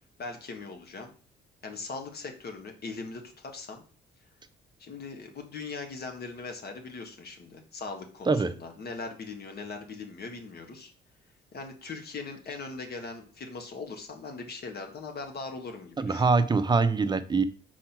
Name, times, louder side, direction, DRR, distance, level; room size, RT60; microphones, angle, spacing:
voice 1, 0.2-1.1 1.6-3.8 4.8-10.9 11.5-16.3, left 4 dB, 55° left, 4 dB, 1.6 m, -40 dB
voice 2, 16.0-17.4, right 4 dB, 20° right, 9 dB, 0.7 m, -23 dB
4.8 x 4.3 x 6.0 m, 0.39 s
cardioid pair, 90°, 20 cm